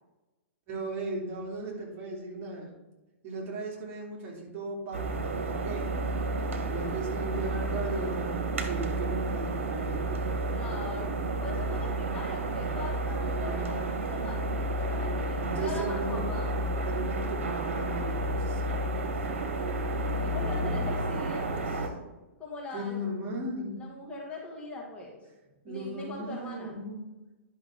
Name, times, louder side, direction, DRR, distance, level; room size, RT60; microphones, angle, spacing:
voice 1, 0.7-2.7 3.2-10.1 12.8-12.9 13.2-13.9 15.4-16.2 16.9-18.6 20.3-20.8 22.7-23.8 25.6-27.0, right 2 dB, 35° right, -3 dB, 3.2 m, -37 dB
sound 1, 4.9-21.9, right 2 dB, 70° right, 1.5 m, -31 dB
voice 2, 10.5-11.1 11.4-16.5 19.2-19.7 20.2-21.9 22.4-23.0 23.7-25.1 25.7-26.8, left 2 dB, 15° left, -3 dB, 2.3 m, -40 dB
11.0 x 6.1 x 3.9 m, 1.1 s
figure-of-eight pair, 110°, 7 cm